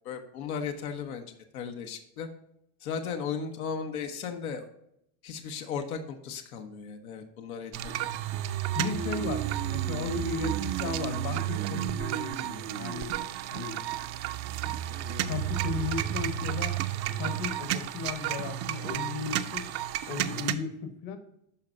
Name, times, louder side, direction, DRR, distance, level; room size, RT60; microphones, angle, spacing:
voice 1, 0.0-2.3 2.8-4.7 5.2-8.0, left 6 dB, 85° left, 4 dB, 1.2 m, -36 dB
sound 1, 7.7-20.6, right 11 dB, 40° right, 0.5 m, -32 dB
voice 2, 8.7-13.1 13.5-13.8 14.7-14.8 15.2-16.8 17.2-19.7 20.0-21.2, left 5 dB, 50° left, 7 dB, 1.2 m, -35 dB
12.5 x 4.4 x 2.6 m, 0.78 s
supercardioid pair, 125°, 41 cm